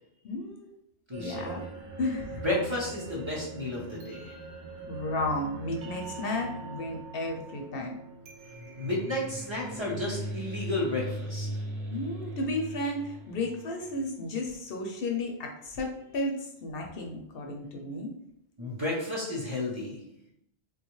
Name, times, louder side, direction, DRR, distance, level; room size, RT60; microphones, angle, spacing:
voice 1, 0.2-0.7 1.1-1.6 2.0-2.4 4.9-7.9 11.9-18.1, left 2 dB, 65° left, 1 dB, 0.7 m, -33 dB
voice 2, 1.1-1.5 2.4-4.4 8.8-11.5 18.6-20.0, left 1 dB, 30° right, -6 dB, 0.6 m, -32 dB
sound 1, 1.1-14.1, right 1 dB, 80° right, 0.9 m, -40 dB
3.3 x 2.3 x 3.0 m, 0.79 s
omnidirectional pair, 1.1 m